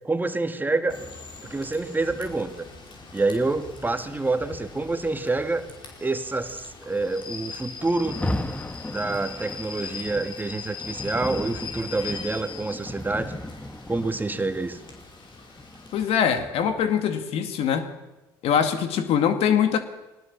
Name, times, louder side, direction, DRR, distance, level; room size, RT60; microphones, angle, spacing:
voice 1, 0.0-1.0 1.5-2.6 3.1-5.6 6.0-8.2 8.9-13.3 13.9-14.8, right 3 dB, 15° right, 2.0 m, -27 dB
Rain / Train, 0.9-16.4, left 5 dB, 50° left, 5.5 m, -41 dB
Rain, 7.9-17.0, left 1 dB, 15° left, 1.8 m, -36 dB
voice 2, 15.9-17.9 18.4-19.8, left 8 dB, 65° left, 2.3 m, -23 dB
21.5 x 19.5 x 7.3 m
hypercardioid pair, 65°, 11 cm